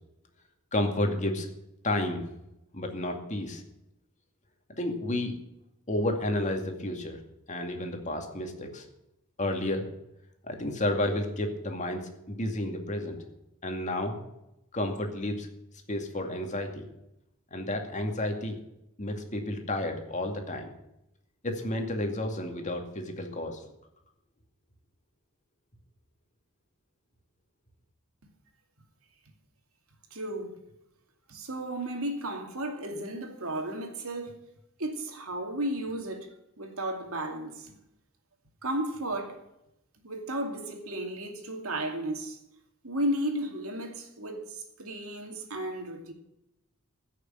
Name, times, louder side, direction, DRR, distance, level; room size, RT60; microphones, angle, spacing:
voice 1, 0.7-1.5 1.8-2.3 2.7-3.6 4.8-5.3 5.9-7.2 7.5-8.8 9.4-9.9 10.4-13.2 13.6-14.2 14.7-15.5 15.9-16.9 17.5-18.6 19.0-20.7 21.4-23.6, left 1 dB, 35° left, 2.3 m, -31 dB
voice 2, 30.1-30.6 31.3-34.4 34.8-36.3 36.6-37.8 38.6-39.4 40.0-42.4 42.8-46.1, right 1 dB, 75° right, 2.5 m, -34 dB
15.5 x 6.7 x 8.9 m
head